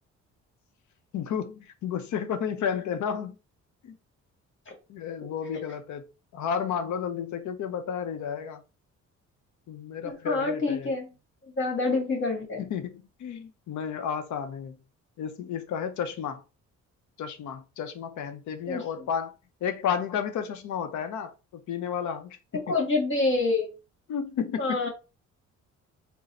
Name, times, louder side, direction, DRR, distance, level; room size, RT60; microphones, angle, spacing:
voice 1, 1.1-3.4 3.8-4.0 4.9-6.0 6.3-8.6 9.7-10.9 12.6-14.8 15.2-16.4 17.2-19.3 19.6-22.8 24.1-24.9, left 7 dB, 75° left, 0.7 m, -32 dB
voice 2, 10.0-11.0 11.6-12.6 18.7-18.8 22.7-23.7 24.6-24.9, left 3 dB, 40° left, 1.5 m, -26 dB
4.0 x 2.1 x 4.1 m
cardioid pair, 90°, 30 cm